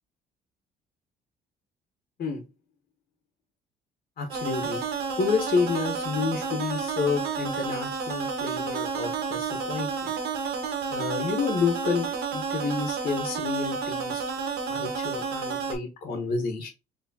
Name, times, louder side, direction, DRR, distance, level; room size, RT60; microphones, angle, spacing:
voice 1, 4.2-4.8 5.2-10.1 10.9-14.2 14.7-16.7, left 4 dB, 55° left, 3 dB, 1.2 m, -29 dB
sound 1, 4.3-15.7, right 5 dB, 70° right, 1.4 m, -31 dB
4.4 x 3.1 x 2.8 m, 0.28 s
cardioid pair, 110°, 17 cm